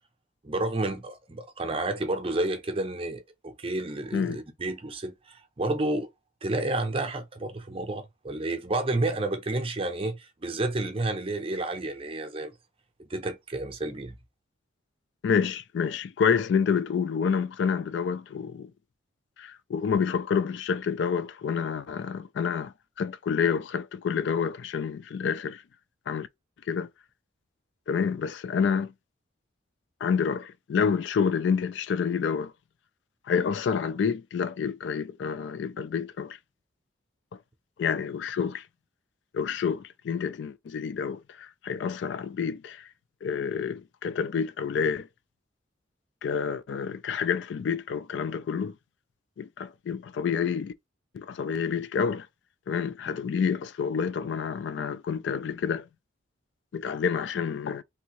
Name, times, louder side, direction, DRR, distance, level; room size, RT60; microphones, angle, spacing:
voice 1, 0.4-6.1 6.4-12.5 13.0-14.2, right 2 dB, 30° right, 0.6 m, -30 dB
voice 2, 15.2-18.7 19.4-25.6 26.1-26.3 26.7-26.9 27.9-28.9 30.0-32.5 33.3-36.4 37.8-38.6 39.3-42.9 43.2-45.1 46.2-48.7 49.4-50.7 51.1-52.3 52.7-55.9 56.7-57.8, left 6 dB, 65° left, 0.3 m, -28 dB
3.4 x 2.7 x 2.9 m
head